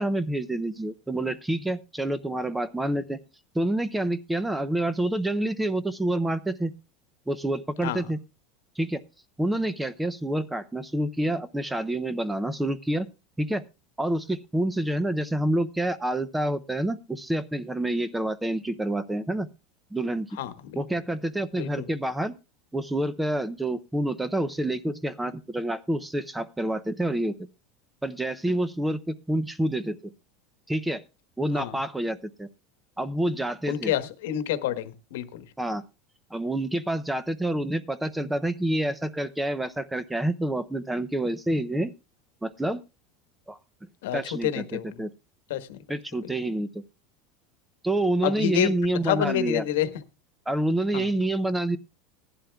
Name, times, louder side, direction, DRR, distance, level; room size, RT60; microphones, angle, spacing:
voice 1, 0.0-3.2 3.5-6.7 7.3-8.2 8.8-9.0 9.4-13.1 13.4-13.6 14.0-19.5 19.9-20.4 20.8-22.3 22.7-27.4 28.0-30.0 30.7-31.0 31.4-32.5 33.0-33.9 35.6-35.8 36.3-41.9 42.4-42.8 43.5-43.6 44.1-45.1 45.9-46.7 47.8-49.6 50.5-51.8, right 1 dB, 5° right, 0.5 m, -28 dB
voice 2, 20.4-20.8 21.6-21.8 31.6-31.8 33.7-35.4 44.0-45.0 45.5-45.8 48.2-48.7 49.0-50.0 50.9-51.1, left 12 dB, 80° left, 1.2 m, -28 dB
18.5 x 11.5 x 2.3 m
supercardioid pair, 165°, 0 cm